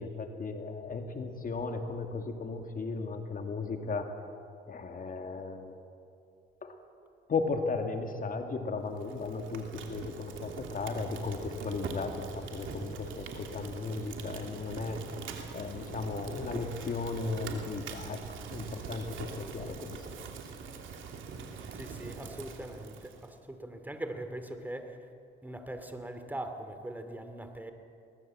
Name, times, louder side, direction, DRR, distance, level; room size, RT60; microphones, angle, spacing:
voice 1, 0.0-4.2 4.7-5.7 6.6-6.7 7.3-15.0 15.5-20.0, left 4 dB, 45° left, 5 dB, 2.2 m, -36 dB
Fire, 8.9-23.3, right 5 dB, 80° right, 2.8 m, -43 dB
voice 2, 21.7-25.0 25.4-27.7, right 1 dB, 10° right, 7 dB, 2.5 m, -41 dB
22.0 x 19.5 x 7.6 m, 2.5 s
cardioid pair, 90°, 20 cm